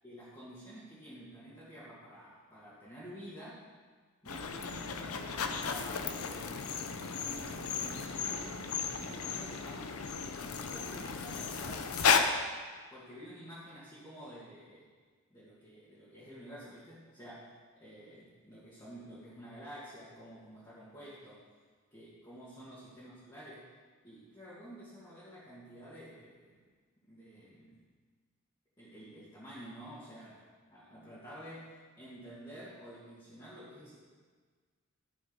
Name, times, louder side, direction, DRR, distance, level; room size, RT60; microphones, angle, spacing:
voice 1, 0.0-3.7 4.2-8.6 8.9-10.1 10.7-12.5 12.9-14.9 15.3-21.5 21.9-23.7 24.0-26.6 27.1-27.8 28.8-34.0, equal, 20° left, -11 dB, 2.0 m, -50 dB
sound 1, 4.3-12.2, left 6 dB, 85° left, 0.7 m, -34 dB
11.5 x 6.3 x 5.4 m, 1.5 s
head